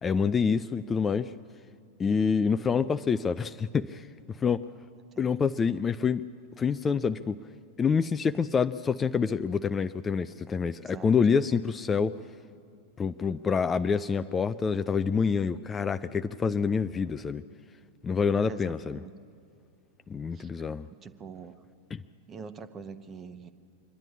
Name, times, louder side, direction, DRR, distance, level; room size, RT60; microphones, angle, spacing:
voice 1, 0.0-1.3 2.0-4.7 5.2-6.2 6.6-7.4 7.8-12.2 13.0-17.4 18.0-19.0 20.1-20.9 21.9-22.0, left 6 dB, 20° left, 11 dB, 0.4 m, -27 dB
voice 2, 18.4-19.1 20.3-20.5 21.0-21.6 22.3-23.5, right 5 dB, 25° right, 11 dB, 1.0 m, -44 dB
25.5 x 10.5 x 9.8 m, 2.4 s
figure-of-eight pair, 90°, 0 cm